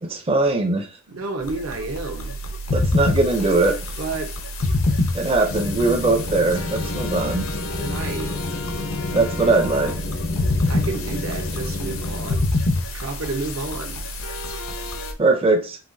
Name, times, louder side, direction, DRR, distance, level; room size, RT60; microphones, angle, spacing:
voice 1, 0.0-0.9 2.7-3.8 5.1-7.5 9.1-9.9 15.2-15.8, right 3 dB, 25° right, 0.4 m, -20 dB
voice 2, 1.1-2.4 4.0-4.4 7.8-8.3 10.7-12.5 12.9-14.1, right 3 dB, 80° right, 0.9 m, -31 dB
sound 1, 1.4-15.1, left 2 dB, 80° left, 0.7 m, -27 dB
sound 2, 5.5-12.3, left 2 dB, 40° left, 0.4 m, -30 dB
5.5 x 2.8 x 2.6 m
head